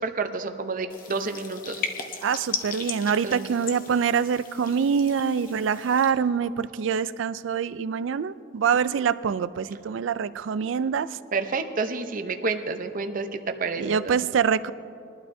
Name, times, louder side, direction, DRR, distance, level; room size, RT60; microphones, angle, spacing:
voice 1, 0.0-1.8 3.1-3.5 11.3-14.2, right 4 dB, 45° right, 7 dB, 0.7 m, -30 dB
sound 1, 0.9-6.1, left 5 dB, 45° left, 0.9 m, -37 dB
voice 2, 2.2-11.2 13.8-14.7, right 7 dB, 75° right, 15 dB, 0.4 m, -25 dB
21.0 x 12.0 x 2.7 m, 2.6 s
head